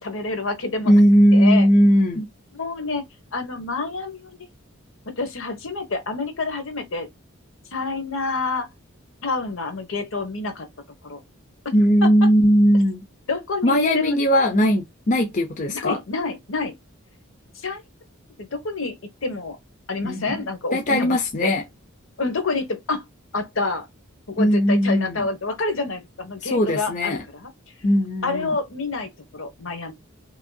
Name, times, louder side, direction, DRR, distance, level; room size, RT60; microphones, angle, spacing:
voice 1, 0.0-0.9 1.3-1.7 2.5-3.0 3.3-4.3 5.2-7.1 7.7-8.7 9.2-10.7 11.0-11.2 13.3-14.2 15.7-16.8 17.5-17.8 18.4-19.0 19.2-19.6 19.9-21.5 22.2-23.0 23.3-23.9 24.4-27.5 28.2-29.9, left 3 dB, 65° left, 1.1 m, -28 dB
voice 2, 0.9-2.3 11.7-13.0 13.6-16.0 20.0-20.4 20.7-21.6 24.4-25.3 26.4-27.2 27.8-28.6, equal, 35° left, 0.6 m, -18 dB
5.3 x 2.7 x 2.2 m
head